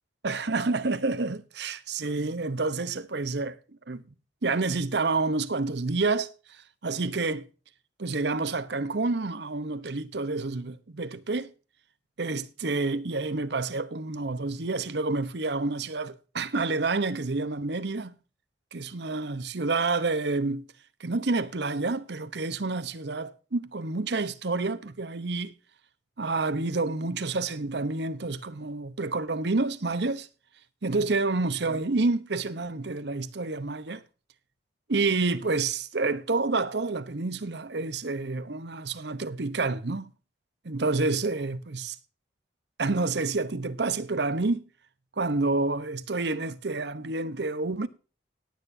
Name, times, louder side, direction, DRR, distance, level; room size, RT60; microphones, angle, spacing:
voice 1, 0.2-3.6 3.9-4.0 4.4-7.5 8.0-11.5 12.2-18.1 18.7-20.7 21.0-25.5 26.2-30.3 30.8-34.0 34.9-40.1 40.6-42.0 42.8-44.6 45.2-47.9, right 3 dB, 65° right, 0.9 m, -29 dB
18.0 x 9.0 x 2.7 m
head